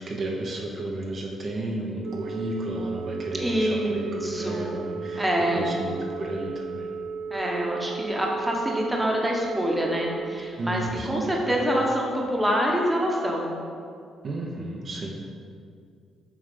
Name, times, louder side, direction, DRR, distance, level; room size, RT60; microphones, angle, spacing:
voice 1, 0.0-6.9 10.4-11.7 14.2-15.2, right 2 dB, 45° right, -1 dB, 0.9 m, -33 dB
Telephone, 2.0-10.4, right 5 dB, 85° right, 0.5 m, -35 dB
voice 2, 3.4-4.8 5.2-5.7 7.3-10.8 11.1-13.5, equal, 10° right, -2 dB, 1.1 m, -26 dB
7.2 x 3.2 x 5.3 m, 2.3 s
cardioid pair, 90°, 0 cm